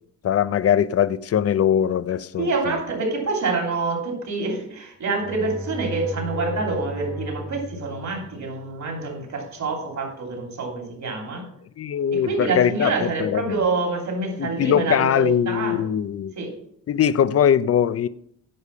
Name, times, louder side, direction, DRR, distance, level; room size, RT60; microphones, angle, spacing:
voice 1, 0.2-2.8 11.8-13.6 14.4-16.3 16.9-18.1, left 9 dB, 45° left, 0.5 m, -21 dB
voice 2, 2.4-11.5 12.1-15.8 16.4-16.6, right 3 dB, 50° right, 3.0 m, -26 dB
Bowed string instrument, 5.1-8.9, right 1 dB, ahead, 1.3 m, -35 dB
9.8 x 5.2 x 5.5 m
cardioid pair, 95°, 35 cm